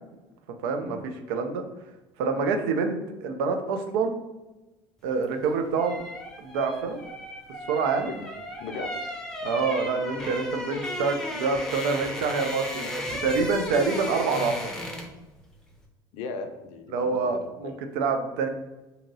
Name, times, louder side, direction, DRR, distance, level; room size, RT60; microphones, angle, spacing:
voice 1, 0.6-1.6 2.2-4.2 5.0-6.0 6.4-7.0 7.7-8.1 9.4-14.7 16.9-18.5, right 4 dB, 80° right, 6 dB, 0.4 m, -27 dB
sound 1, 5.2-15.2 15.5-15.7, left 1 dB, 5° left, 0.6 m, -35 dB
voice 2, 8.6-8.9 10.9-11.0 16.1-17.7, left 4 dB, 70° left, 6 dB, 0.4 m, -38 dB
2.8 x 2.7 x 2.6 m, 1.1 s
supercardioid pair, 90°, 12 cm